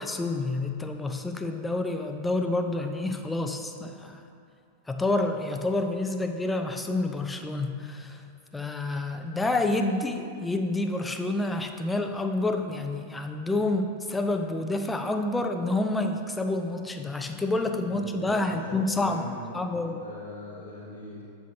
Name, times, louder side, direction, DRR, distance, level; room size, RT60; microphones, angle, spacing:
voice 1, 0.0-4.2 4.9-8.2 8.5-19.3 19.5-20.0, left 2 dB, 10° left, 5 dB, 0.5 m, -28 dB
voice 2, 17.9-19.6 20.0-21.2, equal, 90° left, -6 dB, 1.6 m, -41 dB
7.5 x 7.2 x 2.8 m, 2.4 s
hypercardioid pair, 95°, 0 cm